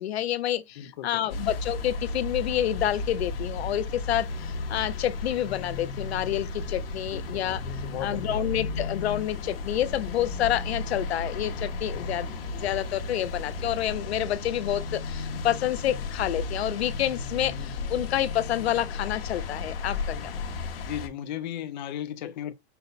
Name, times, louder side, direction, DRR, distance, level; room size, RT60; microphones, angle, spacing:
voice 1, 0.0-7.6 8.0-20.3, left 12 dB, 85° left, 0.7 m, -28 dB
voice 2, 0.8-1.2 7.1-8.4 11.9-12.4 17.5-17.8 20.1-20.3 20.8-22.5, left 10 dB, 45° left, 0.5 m, -37 dB
sound 1, 1.3-21.1, left 3 dB, 65° left, 1.2 m, -34 dB
sound 2, 4.1-13.9, right 2 dB, 60° right, 2.0 m, -52 dB
5.5 x 2.2 x 3.9 m
supercardioid pair, 180°, 31 cm